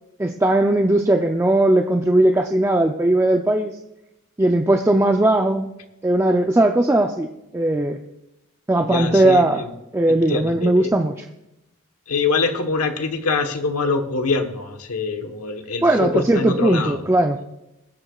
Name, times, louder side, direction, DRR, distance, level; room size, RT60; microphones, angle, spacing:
voice 1, 0.2-3.8 4.4-5.7 6.0-7.3 7.5-8.0 8.7-9.6 9.9-11.3 15.8-17.4, right 1 dB, 10° right, 4 dB, 0.4 m, -18 dB
voice 2, 8.8-9.7 10.3-10.9 12.1-17.0, left 4 dB, 85° left, 6 dB, 1.2 m, -24 dB
22.5 x 7.8 x 2.4 m, 0.90 s
head